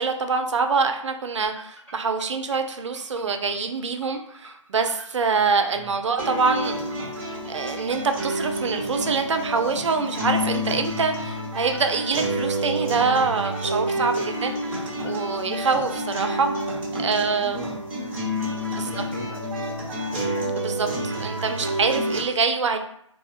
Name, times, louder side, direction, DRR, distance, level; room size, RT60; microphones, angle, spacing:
voice 1, 0.0-6.9 7.2-17.6 18.8-18.9 20.6-22.8, right 4 dB, 60° right, 6 dB, 0.4 m, -25 dB
sound 1, 1.4-15.2, equal, 10° left, 1.0 m, -47 dB
sound 2, 6.2-22.2, equal, 15° right, 0.8 m, -29 dB
voice 2, 17.0-20.1, left 1 dB, 40° left, 2 dB, 0.5 m, -41 dB
3.5 x 2.0 x 2.4 m, 0.72 s
figure-of-eight pair, 150°, 17 cm